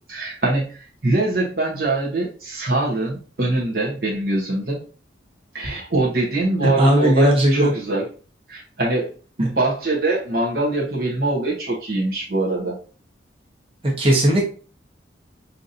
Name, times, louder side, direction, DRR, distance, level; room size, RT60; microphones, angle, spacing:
voice 1, 0.0-4.8 5.5-8.1 8.5-9.1 9.4-12.8, right 2 dB, 55° right, -4 dB, 0.9 m, -23 dB
voice 2, 6.6-7.7 9.4-9.5 14.0-14.5, right 1 dB, 30° right, -2 dB, 1.2 m, -17 dB
5.6 x 2.7 x 2.6 m, 0.38 s
head